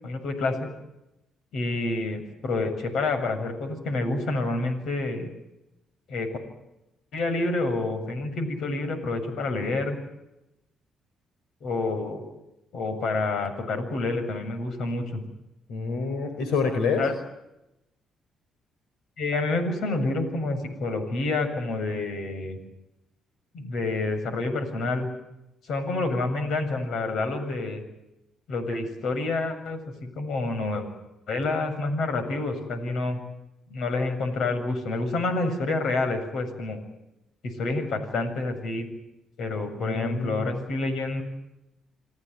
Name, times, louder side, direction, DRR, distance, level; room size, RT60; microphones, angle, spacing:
voice 1, 0.0-0.7 1.5-5.3 6.1-6.3 7.1-10.0 11.6-12.3 12.7-15.2 17.0-17.1 19.2-22.6 23.5-25.1 25.6-27.8 28.5-30.8 31.3-33.2 33.7-36.8 37.6-38.9 39.4-41.2, left 2 dB, 70° left, 9 dB, 7.4 m, -28 dB
voice 2, 15.7-17.0 39.8-40.6, left 4 dB, 90° left, 6 dB, 4.6 m, -27 dB
29.0 x 18.0 x 9.6 m, 0.90 s
cardioid pair, 90°, 0 cm